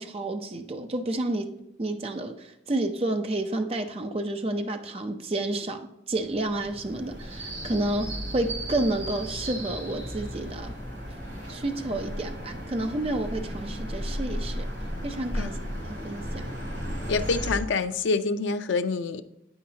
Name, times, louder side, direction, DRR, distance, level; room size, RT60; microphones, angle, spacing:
voice 1, 0.0-1.5 1.8-10.7 11.5-14.7 15.0-15.6 15.8-16.5, right 2 dB, 30° right, 0.5 m, -30 dB
sound 1, 6.1-17.6, equal, 85° right, 2.7 m, -35 dB
voice 2, 17.1-19.2, left 4 dB, 80° left, 0.4 m, -26 dB
8.6 x 5.8 x 2.8 m
head